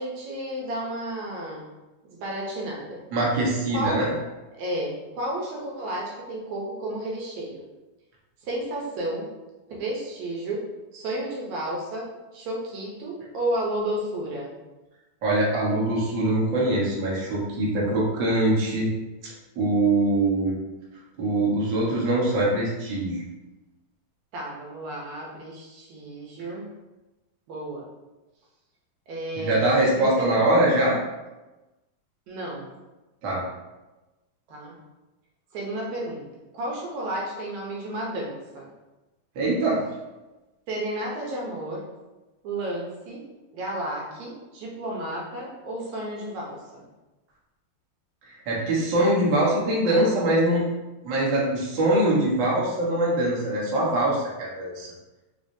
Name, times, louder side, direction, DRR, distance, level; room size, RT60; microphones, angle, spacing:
voice 1, 0.0-1.7 2.0-3.0 3.7-4.1 4.5-7.6 8.4-9.3 9.7-10.6 10.9-14.5 24.3-26.7 27.5-27.8 29.1-30.5 32.3-32.7 34.5-34.7 35.5-36.3 36.5-38.7 40.7-41.8 42.4-43.3 43.5-46.9, right 1 dB, 70° right, -3 dB, 1.8 m, -32 dB
voice 2, 3.1-4.1 15.2-18.9 19.2-20.5 21.2-23.2 29.4-31.0 33.2-33.4 39.3-39.8 48.3-50.6 51.0-54.9, right 1 dB, 85° right, -5 dB, 1.0 m, -23 dB
4.8 x 3.9 x 2.7 m, 1.1 s
omnidirectional pair, 4.0 m